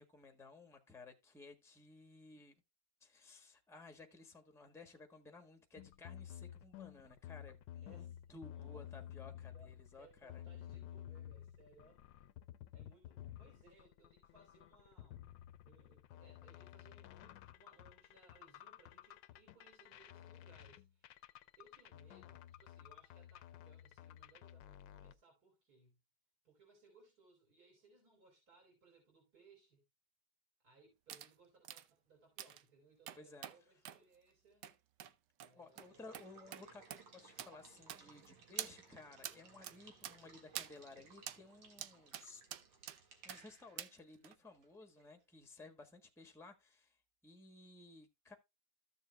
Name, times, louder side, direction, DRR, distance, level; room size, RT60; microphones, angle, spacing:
voice 1, 0.0-2.5 3.0-10.4 33.1-33.5 35.5-42.4 43.2-47.0 47.2-48.3, left 3 dB, ahead, 1.0 m, -57 dB
sound 1, 5.8-25.1, left 11 dB, 80° left, 1.3 m, -53 dB
voice 2, 7.8-8.2 8.5-8.9 9.5-12.0 12.7-15.2 15.6-21.2 21.6-26.0 26.4-29.9 30.6-34.7 35.4-36.2, right 3 dB, 50° right, 4.4 m, -67 dB
sound 2, 31.1-31.3 31.6-31.8 32.4-32.6 33.1-33.6 33.8-34.0 34.6-34.7 35.0-35.1 35.4-35.5 35.8-35.9 36.1-36.3 36.5-36.6 36.9-37.0 37.4-37.5 37.9-38.3 38.6-38.7 39.2-39.4 39.6-39.8 40.0-40.2 40.5-40.7 41.3-41.4 41.8-42.3 42.5-43.0 43.3-43.4 43.8-43.9 44.2-44.3, right 11 dB, 70° right, 1.2 m, -46 dB
Water / Water tap faucet / Liquid, 35.6-45.2, right 5 dB, 90° right, 2.6 m, -62 dB
14.0 x 6.9 x 2.2 m
omnidirectional pair, 2.0 m